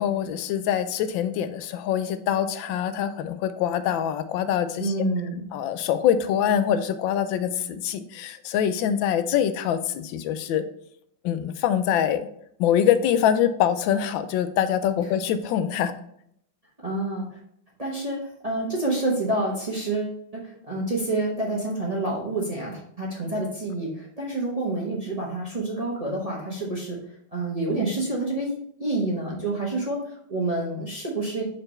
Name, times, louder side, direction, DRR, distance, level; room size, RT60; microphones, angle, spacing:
voice 1, 0.0-4.9 5.5-10.6 11.2-12.3 12.6-15.9, left 9 dB, 85° left, 11 dB, 1.3 m, -24 dB
voice 2, 4.8-5.5 16.8-17.3 17.8-27.0 27.3-28.5 28.8-31.4, right 2 dB, 25° right, -3 dB, 0.9 m, -28 dB
5.1 x 4.4 x 4.3 m, 0.69 s
omnidirectional pair, 2.0 m